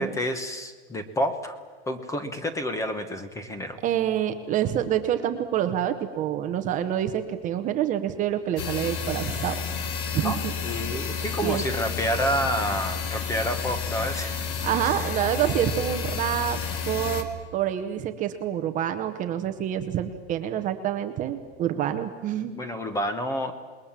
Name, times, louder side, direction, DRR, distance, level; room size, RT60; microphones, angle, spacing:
voice 1, 0.0-1.6 1.9-3.8 10.2-14.4 22.6-23.5, equal, 10° left, 11 dB, 1.1 m, -29 dB
voice 2, 3.8-9.6 10.1-10.5 11.4-11.6 14.6-16.6 16.9-17.3 17.5-22.5, right 11 dB, 20° right, 8 dB, 0.9 m, -27 dB
sound 1, 8.6-17.2, left 6 dB, 45° left, 2.1 m, -31 dB
27.5 x 21.0 x 7.4 m, 1.4 s
supercardioid pair, 175°, 34 cm